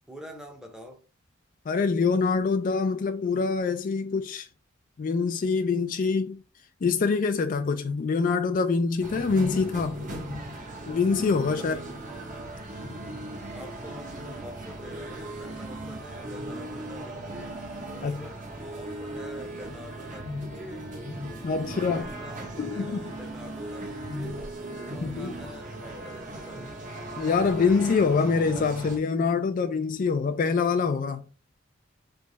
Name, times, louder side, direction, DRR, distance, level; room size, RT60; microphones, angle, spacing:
voice 1, 0.1-1.0 11.6-11.9 13.5-17.6 17.8-18.4 18.8-20.9 21.9-24.4 24.9-26.7, equal, 5° right, 0.8 m, -46 dB
voice 2, 1.7-4.5 5.0-6.4 6.8-9.9 10.9-11.8 18.0-18.2 21.4-22.1 22.6-23.1 25.0-25.4 27.2-31.2, left 4 dB, 45° left, 0.3 m, -25 dB
sound 1, 9.0-29.0, right 1 dB, 40° right, 0.9 m, -38 dB
Trumpet, 19.1-28.0, right 2 dB, 60° right, 1.6 m, -48 dB
3.4 x 3.1 x 3.8 m
head